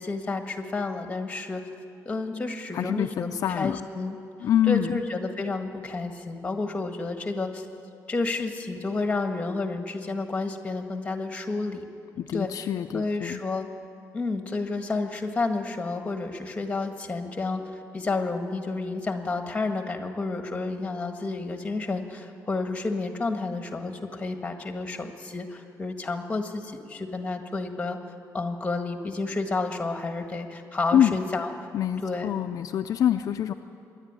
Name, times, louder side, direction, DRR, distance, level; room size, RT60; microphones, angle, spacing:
voice 1, 0.0-1.6 2.0-4.2 4.7-7.7 8.1-11.8 12.3-12.5 12.9-13.7 14.1-28.0 28.3-31.5 32.0-32.3, left 3 dB, 20° left, 5 dB, 1.7 m, -30 dB
voice 2, 2.7-3.8 4.4-5.0 12.2-13.4 30.9-31.2 31.7-33.5, left 10 dB, 60° left, 6 dB, 0.5 m, -25 dB
25.5 x 11.0 x 9.6 m, 2.6 s
cardioid pair, 145°, 7 cm